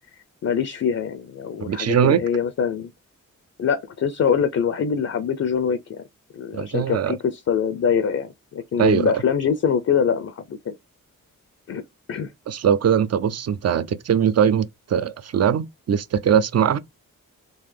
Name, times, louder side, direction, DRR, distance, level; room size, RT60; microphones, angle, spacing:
voice 1, 0.4-2.9 3.6-6.0 6.3-10.7 11.7-11.8 12.1-12.3, left 7 dB, 50° left, 0.5 m, -24 dB
voice 2, 1.6-2.2 6.5-7.2 8.8-9.1 12.5-16.8, right 8 dB, 50° right, 0.5 m, -21 dB
3.8 x 2.4 x 3.2 m
cardioid pair, 50°, 34 cm